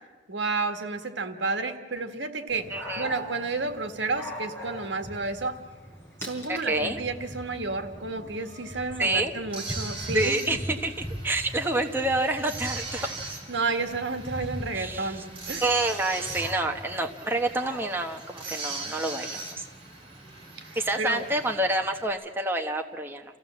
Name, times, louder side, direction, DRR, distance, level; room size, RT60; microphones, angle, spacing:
voice 1, 0.3-2.7 2.9-5.6 6.2-10.4 13.0-13.1 13.5-15.6 20.6-21.3, right 3 dB, 75° right, 7 dB, 1.6 m, -31 dB
Dog, 2.5-22.1, equal, 15° left, 4.5 m, -41 dB
voice 2, 2.7-3.1 6.5-7.0 9.0-9.3 10.1-10.9 11.2-13.1 14.7-15.1 15.6-19.6 20.7-23.2, right 2 dB, 10° right, 3 dB, 1.0 m, -28 dB
sound 1, 9.5-21.5, right 3 dB, 30° right, 3.9 m, -40 dB
28.5 x 15.5 x 7.5 m, 1.4 s
head